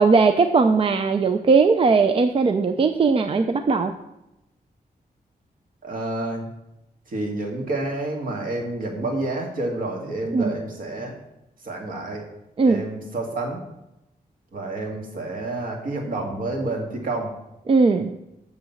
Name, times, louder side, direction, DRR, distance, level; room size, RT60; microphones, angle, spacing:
voice 1, 0.0-3.9 10.3-10.4 12.6-12.8 17.7-18.1, right 4 dB, 35° right, 7 dB, 0.4 m, -18 dB
voice 2, 5.8-6.5 7.1-11.2 11.6-12.2 12.6-13.6 14.5-17.3, right 2 dB, 60° right, 1 dB, 1.9 m, -29 dB
7.2 x 6.5 x 7.1 m, 0.91 s
wide cardioid pair, 180°, 16 cm